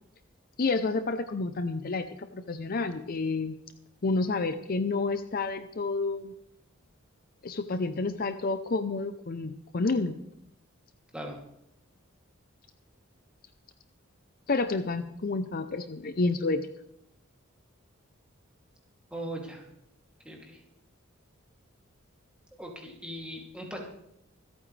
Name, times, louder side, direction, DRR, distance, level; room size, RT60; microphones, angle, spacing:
voice 1, 0.6-3.6 4.0-6.3 7.4-10.2 14.5-16.7, left 3 dB, 45° left, 10 dB, 0.6 m, -29 dB
voice 2, 19.1-19.6 20.2-20.6 22.6-23.8, right 1 dB, 5° right, -1 dB, 2.6 m, -39 dB
25.5 x 8.7 x 3.3 m, 0.77 s
head